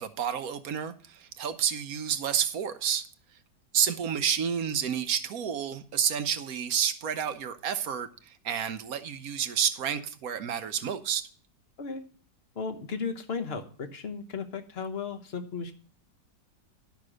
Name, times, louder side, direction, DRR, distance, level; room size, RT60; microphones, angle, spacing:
voice 1, 0.0-3.1 3.7-11.3, right 8 dB, 60° right, 10 dB, 1.1 m, -30 dB
voice 2, 12.5-15.7, left 5 dB, 40° left, 8 dB, 1.2 m, -35 dB
12.0 x 5.9 x 6.3 m, 0.43 s
omnidirectional pair, 1.9 m